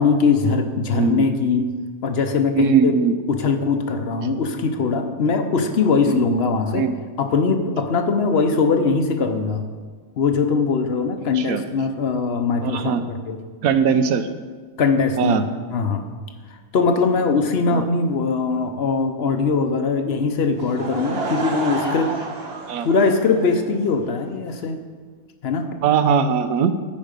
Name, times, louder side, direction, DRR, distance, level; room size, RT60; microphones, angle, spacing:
voice 1, 0.0-1.7 2.0-2.9 3.3-6.9 7.2-9.7 10.2-13.4 14.8-15.4 15.7-16.0 16.7-22.1 22.8-24.8 25.4-25.7, left 4 dB, 50° left, 6 dB, 0.9 m, -21 dB
voice 2, 0.9-1.3 2.5-3.2 6.0-6.2 6.7-6.9 11.3-11.6 12.6-13.0 13.6-14.3 15.2-15.5 17.7-17.9 22.7-22.9 25.8-26.7, right 6 dB, 80° right, 10 dB, 1.1 m, -20 dB
Laughter / Crowd, 20.5-24.1, right 3 dB, 45° right, 1.3 m, -30 dB
14.0 x 5.2 x 5.2 m, 1.5 s
omnidirectional pair, 1.5 m